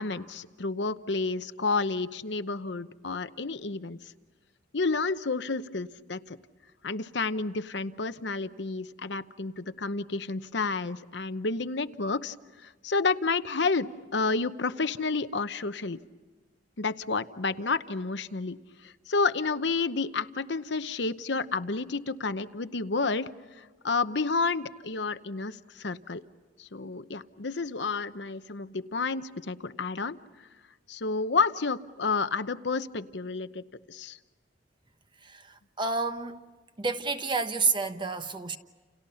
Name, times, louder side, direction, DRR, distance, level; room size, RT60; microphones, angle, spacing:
voice 1, 0.0-4.0 4.7-6.4 6.8-12.3 12.6-16.0 16.8-18.6 18.8-23.3 23.6-26.2 26.6-30.2 30.9-33.6 33.9-34.2, left 4 dB, 65° left, 0.9 m, -30 dB
voice 2, 35.2-36.4 36.8-38.6, right 4 dB, 25° right, 1.1 m, -30 dB
30.0 x 29.5 x 5.7 m
head